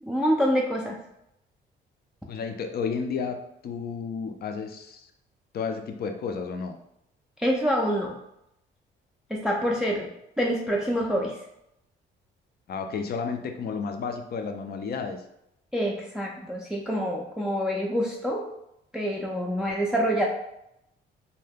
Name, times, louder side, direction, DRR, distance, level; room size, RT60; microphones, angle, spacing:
voice 1, 0.0-1.0 7.4-8.2 9.3-10.1 10.4-11.4 15.7-18.4 18.9-20.3, equal, 5° right, -2 dB, 0.4 m, -26 dB
voice 2, 2.3-3.4 3.6-5.1 5.5-6.7 9.9-10.1 12.7-15.2, left 5 dB, 50° left, 5 dB, 0.5 m, -32 dB
2.7 x 2.1 x 3.4 m, 0.80 s
cardioid pair, 90°, 20 cm